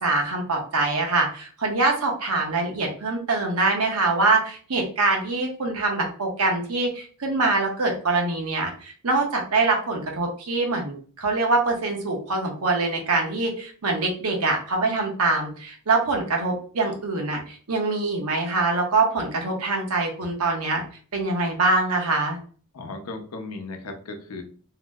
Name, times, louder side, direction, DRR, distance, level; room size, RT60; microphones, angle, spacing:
voice 1, 0.0-20.8 21.1-22.4, right 3 dB, 80° right, 2 dB, 0.9 m, -24 dB
voice 2, 22.7-24.4, left 3 dB, 80° left, 5 dB, 0.6 m, -36 dB
2.8 x 2.0 x 3.4 m, 0.42 s
head